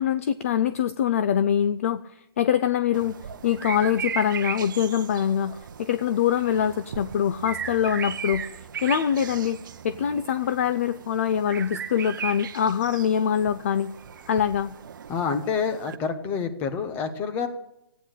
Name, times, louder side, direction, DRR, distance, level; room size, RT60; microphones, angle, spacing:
voice 1, 0.0-3.2 3.4-9.6 9.8-13.9 14.3-14.7, left 9 dB, 35° left, 14 dB, 0.5 m, -24 dB
sound 1, 2.9-16.0, right 7 dB, 50° right, 0.8 m, -37 dB
voice 2, 15.1-17.5, left 6 dB, 15° left, 8 dB, 1.0 m, -27 dB
15.0 x 9.3 x 9.0 m, 0.84 s
hypercardioid pair, 165°, 13 cm